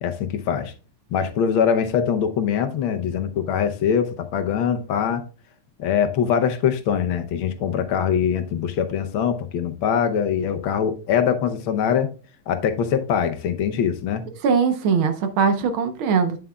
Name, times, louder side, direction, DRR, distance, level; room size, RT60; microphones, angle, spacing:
voice 1, 0.0-0.7 1.1-5.2 5.8-12.1 12.5-14.3, left 8 dB, 75° left, 1.6 m, -23 dB
voice 2, 14.4-16.4, right 6 dB, 75° right, 1.7 m, -21 dB
8.8 x 7.4 x 2.3 m
omnidirectional pair, 2.4 m